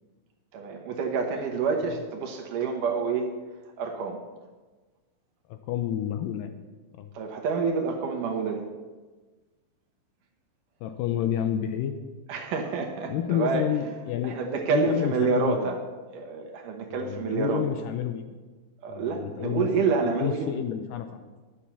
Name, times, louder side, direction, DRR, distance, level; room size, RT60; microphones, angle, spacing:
voice 1, 0.5-3.3 3.8-4.2 7.1-8.7 12.3-13.6 14.2-15.8 16.1-17.6 18.8-20.5, right 5 dB, 70° right, 2 dB, 2.4 m, -28 dB
voice 2, 5.5-6.5 6.9-7.1 10.8-12.0 13.1-14.4 14.7-15.6 16.9-18.4 18.9-21.3, left 10 dB, 80° left, 8 dB, 2.1 m, -30 dB
11.0 x 7.4 x 6.9 m, 1.3 s
omnidirectional pair, 4.3 m